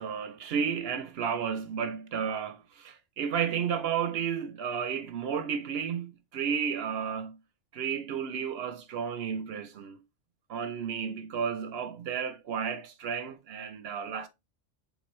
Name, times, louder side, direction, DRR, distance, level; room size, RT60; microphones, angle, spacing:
voice 1, 0.0-7.4 7.7-10.0 10.5-14.3, right 7 dB, 65° right, 0.7 m, -32 dB
4.0 x 3.4 x 3.1 m
omnidirectional pair, 1.3 m